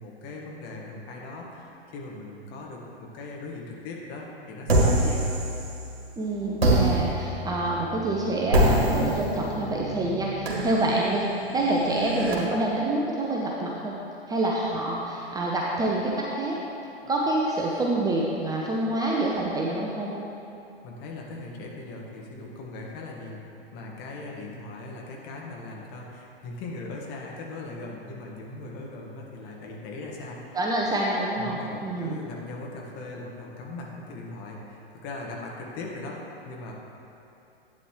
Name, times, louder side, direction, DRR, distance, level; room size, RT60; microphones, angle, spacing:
voice 1, 0.0-5.4 20.8-23.4 23.7-30.6 31.4-36.7, left 2 dB, 35° left, -2 dB, 1.7 m, -39 dB
sound 1, 4.7-6.0 6.6-12.3, right 1 dB, 75° right, 2.0 m, -26 dB
voice 2, 6.2-11.3 11.5-13.9 14.3-16.6 17.1-20.2 30.5-32.2, right 2 dB, 10° right, -3 dB, 0.7 m, -27 dB
11.5 x 8.9 x 3.2 m, 2.7 s
figure-of-eight pair, 105°, 31 cm